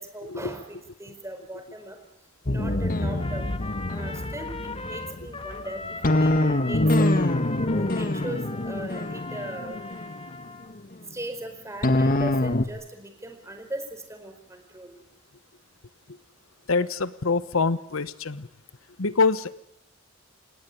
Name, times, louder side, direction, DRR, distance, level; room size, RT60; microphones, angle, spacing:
voice 1, 0.0-2.0 2.5-3.5 3.9-7.3 7.7-9.8 11.1-14.9, right 1 dB, 15° right, 6 dB, 4.7 m, -39 dB
sound 1, 2.5-10.7 11.8-12.6, left 1 dB, 45° left, 1.5 m, -25 dB
Trumpet, 3.2-10.7, left 3 dB, 30° left, 2.0 m, -39 dB
voice 2, 16.7-18.5 19.0-19.6, left 4 dB, 85° left, 14 dB, 1.1 m, -25 dB
29.0 x 18.0 x 9.9 m, 0.81 s
head